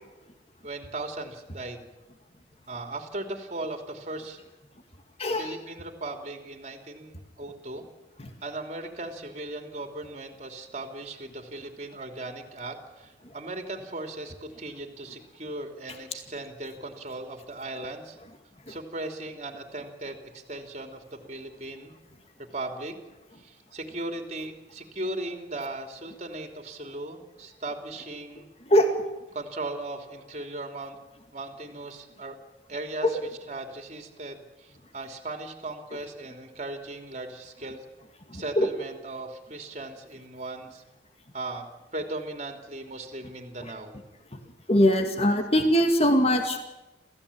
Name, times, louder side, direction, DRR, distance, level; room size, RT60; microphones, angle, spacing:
voice 1, 0.6-1.9 2.7-4.4 5.4-7.9 8.4-18.2 18.7-21.9 22.5-23.0 23.4-28.5 29.3-31.0 31.3-32.4 32.7-33.2 33.5-37.8 38.3-40.8 41.3-41.7 41.9-44.0 45.0-45.2 45.5-45.7 46.5-46.6, right 2 dB, 40° right, 5 dB, 3.1 m, -37 dB
voice 2, 5.2-5.6 8.2-8.3 18.7-18.8 28.7-28.9 33.0-33.1 38.3-38.7 44.7-46.6, equal, 35° left, 5 dB, 2.2 m, -22 dB
28.0 x 15.5 x 8.7 m, 1.0 s
head